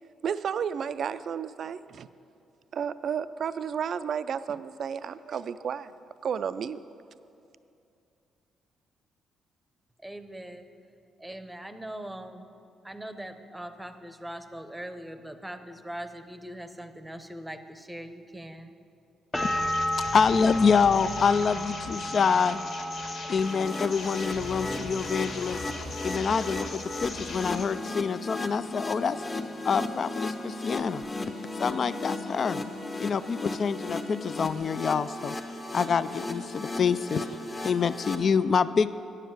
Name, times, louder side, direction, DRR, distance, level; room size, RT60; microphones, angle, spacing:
voice 1, 0.2-2.1 2.7-5.9 6.2-6.8, right 7 dB, 60° right, 14 dB, 0.3 m, -32 dB
voice 2, 10.0-10.7 11.2-12.5 12.8-18.7, right 1 dB, 5° right, 9 dB, 0.7 m, -41 dB
sound 1, 19.3-27.7, left 2 dB, 70° left, 1.8 m, -39 dB
sound 2, 19.3-25.0 25.3-26.0, left 1 dB, 15° left, 1.1 m, -34 dB
voice 3, 20.1-22.6 23.3-25.6 26.0-29.2 29.6-31.0 31.6-32.6 33.0-35.4 35.7-37.3 37.6-38.9, left 6 dB, 50° left, 15 dB, 0.3 m, -26 dB
sound 3, 23.4-38.2, left 2 dB, 30° left, 1.0 m, -36 dB
10.0 x 7.3 x 7.8 m, 2.6 s
cardioid pair, 90°, 0 cm